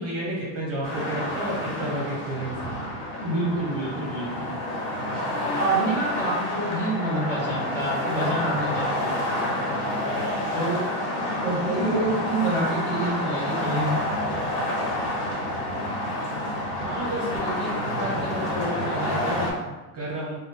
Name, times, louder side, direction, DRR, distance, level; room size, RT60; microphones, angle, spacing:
voice 1, 0.0-2.7 16.8-20.4, right 1 dB, 30° right, -5 dB, 0.9 m, -32 dB
sound 1, 0.8-19.5, left 1 dB, 55° left, 1.2 m, -28 dB
voice 2, 3.2-4.5 5.3-9.2 10.5-11.0 11.4-14.0, right 2 dB, 5° left, -7 dB, 1.5 m, -27 dB
3.6 x 2.2 x 3.7 m, 1.1 s
cardioid pair, 130°, 46 cm